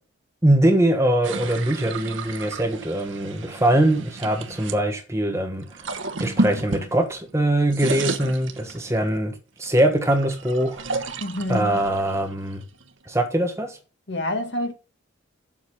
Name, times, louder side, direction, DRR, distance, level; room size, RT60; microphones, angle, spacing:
voice 1, 0.4-5.7 6.2-10.8 11.5-12.6 13.1-13.8, right 1 dB, 15° right, 1.3 m, -22 dB
sound 1, 1.2-4.8 5.6-7.3 7.6-9.1 9.6-13.0, right 3 dB, 70° right, 1.0 m, -32 dB
voice 2, 11.2-11.8 14.1-14.7, left 1 dB, 55° left, 1.9 m, -27 dB
7.3 x 6.5 x 7.3 m
head